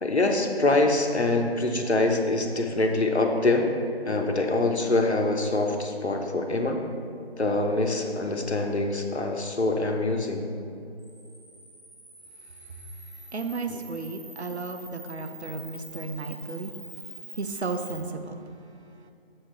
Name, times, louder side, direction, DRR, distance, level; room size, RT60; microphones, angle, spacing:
voice 1, 0.0-3.7 4.1-6.8 7.4-10.4 13.7-13.8, left 2 dB, 85° left, 3 dB, 0.9 m, -24 dB
Camera, 11.0-18.0, right 1 dB, 30° right, 1.3 m, -45 dB
voice 2, 13.3-16.7 17.4-18.4, right 3 dB, 85° right, 6 dB, 0.7 m, -33 dB
7.2 x 6.3 x 3.2 m, 2.5 s
figure-of-eight pair, 160°, 32 cm